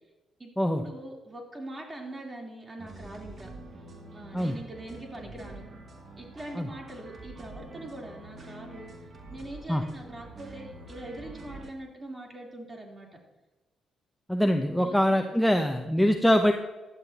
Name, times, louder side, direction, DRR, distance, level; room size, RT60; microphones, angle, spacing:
voice 1, 0.4-3.5 4.1-5.7 6.2-8.9 9.3-13.2 14.8-15.2, right 1 dB, 20° right, -1 dB, 3.7 m, -42 dB
sound 1, 2.8-11.7, right 2 dB, 45° right, 2.6 m, -46 dB
voice 2, 14.3-16.5, equal, 5° left, 5 dB, 0.8 m, -23 dB
16.0 x 11.5 x 3.0 m, 1.1 s
cardioid pair, 90°, 0 cm